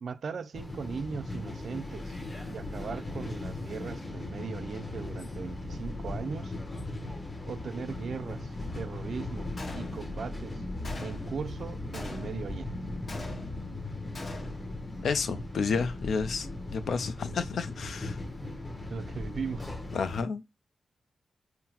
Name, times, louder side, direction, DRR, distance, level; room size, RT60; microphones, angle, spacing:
voice 1, 0.0-2.2 2.5-6.6 7.5-9.5 9.8-10.6 11.0-12.8 18.9-19.8, right 6 dB, 65° right, 0.3 m, -39 dB
sound 1, 0.5-20.2, left 2 dB, 25° left, 0.9 m, -38 dB
Gunshot gunfire, 9.6-10.3 10.8-11.4 11.9-12.5 13.1-13.7 14.1-14.7, left 2 dB, 55° left, 1.2 m, -43 dB
voice 2, 15.0-18.2 19.9-20.4, left 5 dB, 80° left, 0.5 m, -31 dB
5.5 x 2.0 x 2.9 m
wide cardioid pair, 125°, 0 cm